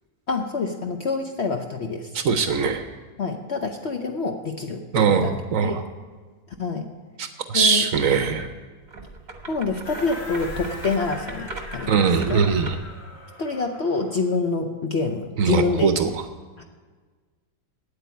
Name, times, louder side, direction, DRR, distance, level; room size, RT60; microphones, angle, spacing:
voice 1, 0.3-2.1 3.2-5.3 5.6-5.8 6.6-6.9 7.5-7.8 9.5-12.0 12.3-12.4 13.4-15.9 16.6-16.7, left 4 dB, 55° left, 4 dB, 0.8 m, -26 dB
voice 2, 2.1-2.8 4.9-5.8 7.2-8.5 11.9-12.8 15.4-16.2, right 6 dB, 60° right, 8 dB, 0.9 m, -21 dB
sound 1, 8.9-13.0, right 3 dB, 30° right, 1.0 m, -38 dB
sound 2, 9.8-14.3, left 2 dB, 35° left, 1.9 m, -41 dB
8.7 x 8.4 x 9.3 m, 1.4 s
omnidirectional pair, 1.9 m